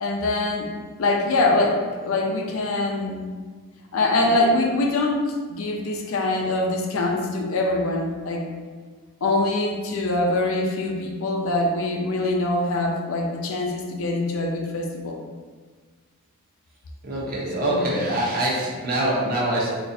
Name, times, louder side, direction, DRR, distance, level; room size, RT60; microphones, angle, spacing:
voice 1, 0.0-0.7 1.0-3.2 3.9-5.2 5.5-8.5 9.2-15.2 17.6-17.8, left 2 dB, 70° left, 1 dB, 0.5 m, -24 dB
voice 2, 17.0-19.7, right 1 dB, 45° right, -5 dB, 0.8 m, -24 dB
4.1 x 2.5 x 2.6 m, 1.5 s
head